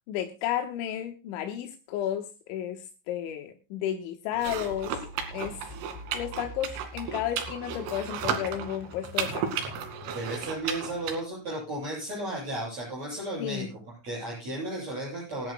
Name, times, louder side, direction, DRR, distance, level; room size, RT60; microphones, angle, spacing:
voice 1, 0.1-5.0 5.3-5.6 6.1-9.5 13.4-13.7, left 10 dB, 80° left, 3.4 m, -32 dB
sound 1, 4.3-11.2, right 7 dB, 85° right, 4.9 m, -34 dB
sound 2, 4.5-10.8, left 2 dB, 60° left, 4.0 m, -46 dB
voice 2, 10.1-13.7 14.0-15.5, right 1 dB, 35° right, 9.1 m, -34 dB
27.0 x 11.5 x 2.3 m
omnidirectional pair, 5.6 m